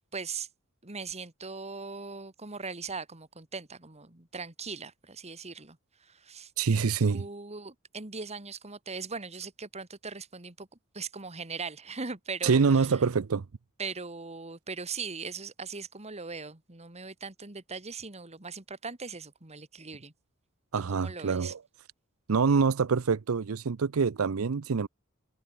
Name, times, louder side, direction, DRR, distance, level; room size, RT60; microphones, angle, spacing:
voice 1, 0.1-0.5 0.8-6.5 7.0-10.7 10.9-13.0 13.8-20.1 20.9-21.5, right 4 dB, 30° right, 2.2 m, -40 dB
voice 2, 6.6-7.2 12.4-13.4 20.7-21.6 22.3-24.9, right 5 dB, 85° right, 0.6 m, -25 dB
head